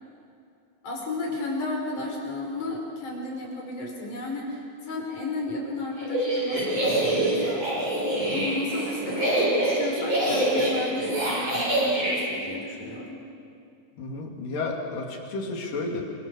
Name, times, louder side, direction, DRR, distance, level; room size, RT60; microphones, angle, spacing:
voice 1, 0.8-7.7 8.3-13.2, left 2 dB, 65° left, -1 dB, 6.5 m, -33 dB
sound 1, 6.0-12.2, right 1 dB, 35° right, 8.3 m, -25 dB
voice 2, 14.0-16.0, left 3 dB, 85° left, 0 dB, 4.6 m, -32 dB
27.0 x 25.5 x 6.7 m, 2.5 s
omnidirectional pair, 3.8 m